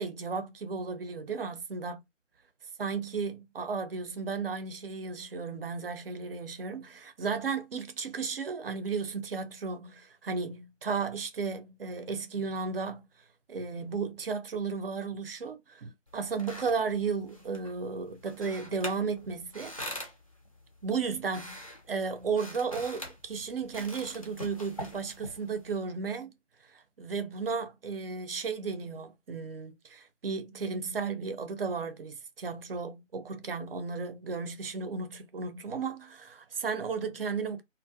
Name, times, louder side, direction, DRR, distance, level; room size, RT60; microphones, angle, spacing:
voice 1, 0.0-2.0 2.8-13.0 13.5-19.8 20.8-26.3 26.7-37.6, right 5 dB, 50° right, 0.5 m, -34 dB
sound 1, 16.1-25.7, equal, 30° left, 0.4 m, -45 dB
2.4 x 2.0 x 2.6 m
figure-of-eight pair, 150°, 37 cm